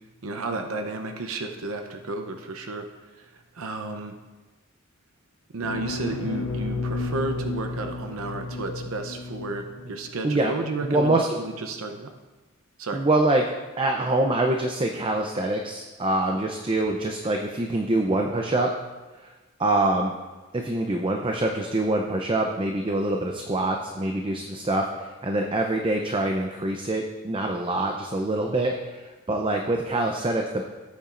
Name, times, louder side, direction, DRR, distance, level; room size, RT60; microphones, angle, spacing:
voice 1, 0.2-2.9 3.1-4.2 5.5-12.1 12.8-13.0, right 2 dB, 70° right, 5 dB, 0.7 m, -32 dB
sound 1, 5.6-10.1, left 3 dB, 85° left, 1.0 m, -32 dB
voice 2, 10.8-11.4 12.9-18.7 19.2-19.3 19.6-20.1 20.5-30.6, right 2 dB, 25° right, 2 dB, 0.6 m, -25 dB
16.0 x 8.6 x 2.5 m, 1.2 s
head